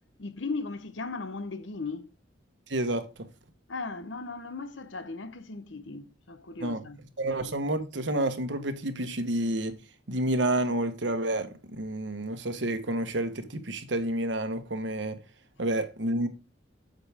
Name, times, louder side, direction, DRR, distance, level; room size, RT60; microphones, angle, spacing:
voice 1, 0.2-2.1 3.7-7.0, left 3 dB, 85° left, 1.0 m, -37 dB
voice 2, 2.7-3.1 6.6-6.9 7.2-9.8 10.1-15.2 15.6-16.3, right 1 dB, 70° right, 1.3 m, -29 dB
9.2 x 7.3 x 3.6 m
head